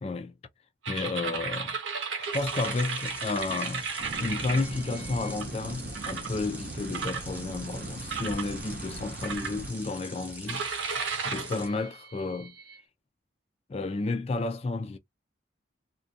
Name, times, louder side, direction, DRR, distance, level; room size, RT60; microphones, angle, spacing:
voice 1, 0.0-0.3 0.9-1.8 2.2-3.9 4.2-10.6 11.2-12.6 13.7-15.0, left 3 dB, 35° left, 0.3 m, -32 dB
sound 1, 0.8-5.4 6.0-6.3 6.9-7.7 8.1-8.5 9.2-9.9 10.5-12.8, right 5 dB, 90° right, 0.8 m, -35 dB
sound 2, 2.3-11.7, right 1 dB, 10° right, 0.7 m, -44 dB
sound 3, 4.0-9.7, right 2 dB, 50° right, 0.5 m, -40 dB
2.4 x 2.2 x 2.6 m
head